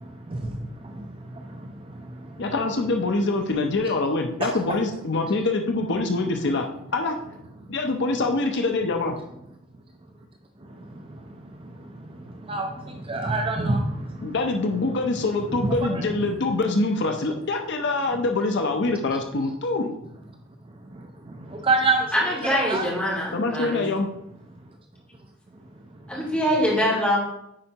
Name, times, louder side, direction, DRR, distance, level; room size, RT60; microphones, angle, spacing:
voice 1, 0.0-2.5 4.4-4.6 10.6-14.3 15.5-16.0 20.9-22.9, right 3 dB, 25° right, 3 dB, 0.5 m, -29 dB
voice 2, 2.4-6.6 6.9-7.2 7.7-9.2 14.2-19.9 23.3-24.1, left 3 dB, 55° left, 4 dB, 0.6 m, -24 dB
voice 3, 22.1-23.8 26.1-27.2, equal, 5° left, -6 dB, 2.3 m, -23 dB
9.7 x 4.5 x 2.9 m, 0.79 s
head